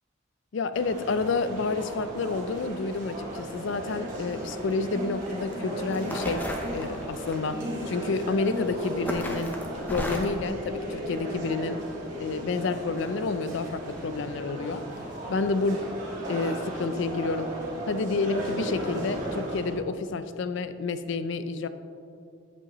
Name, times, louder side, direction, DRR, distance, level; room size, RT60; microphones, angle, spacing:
voice 1, 0.5-9.6 9.9-11.8 12.2-14.9 15.3-15.8 16.3-17.5 17.9-21.7, left 3 dB, 60° left, 12 dB, 0.4 m, -29 dB
sound 1, 0.7-19.8, right 1 dB, 35° right, 1.6 m, -36 dB
sound 2, 4.4-4.7 5.5-5.6 5.9-7.3 8.4-8.7 9.0-10.4, equal, 10° left, 0.7 m, -33 dB
8.5 x 7.9 x 3.0 m, 2.5 s
head